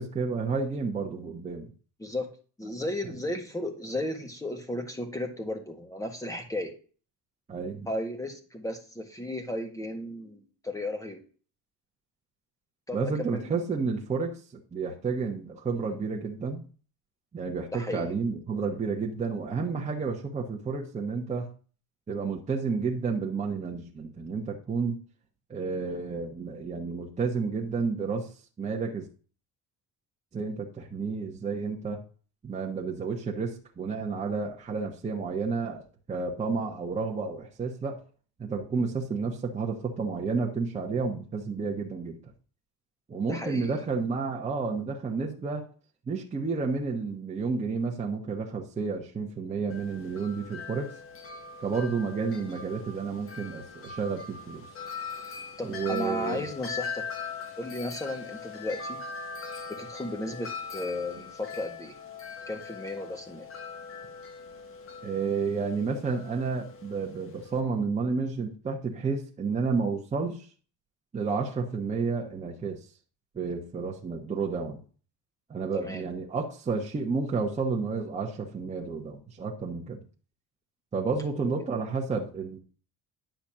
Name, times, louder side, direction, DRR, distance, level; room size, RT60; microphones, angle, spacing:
voice 1, 0.0-1.7 7.5-7.9 12.9-16.6 17.3-21.5 22.1-25.0 25.5-28.3 28.6-29.1 30.3-32.0 32.4-35.8 36.1-38.0 38.4-42.2 43.1-45.7 46.1-50.9 51.6-54.7 55.6-56.5 65.0-70.5 71.1-72.8 73.3-74.8 75.5-80.0 80.9-82.6, right 4 dB, 15° right, -1 dB, 1.1 m, -31 dB
voice 2, 2.6-6.7 7.9-11.2 12.9-13.5 17.7-18.1 43.3-43.8 55.6-57.0 57.6-59.0 59.8-61.9 62.5-63.5 75.7-76.1 81.4-81.5, left 1 dB, 10° left, 4 dB, 1.6 m, -34 dB
Wind chime, 49.7-67.6, left 5 dB, 30° left, 1.4 m, -41 dB
10.5 x 4.1 x 7.3 m, 0.38 s
cardioid pair, 170°, 42 cm